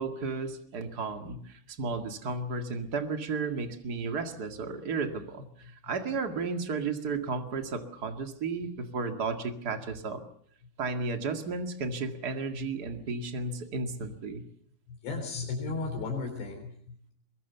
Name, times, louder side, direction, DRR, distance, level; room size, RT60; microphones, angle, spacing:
voice 1, 0.0-10.2 10.8-14.4, right 4 dB, 40° right, 6 dB, 1.4 m, -33 dB
voice 2, 14.9-17.1, left 4 dB, 80° left, 1 dB, 6.1 m, -35 dB
23.0 x 22.5 x 7.0 m, 0.62 s
omnidirectional pair, 5.0 m